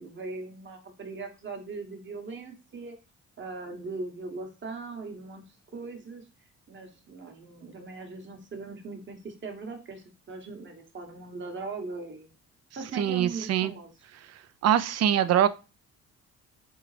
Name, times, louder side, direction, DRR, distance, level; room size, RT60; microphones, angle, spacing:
voice 1, 0.0-3.0 3.4-5.4 5.7-6.2 6.7-12.3 12.8-13.9, right 3 dB, 40° right, 4 dB, 1.1 m, -39 dB
voice 2, 13.0-13.7 14.6-15.5, right 10 dB, 60° right, 14 dB, 0.4 m, -23 dB
3.8 x 3.5 x 3.2 m, 0.31 s
cardioid pair, 90°, 30 cm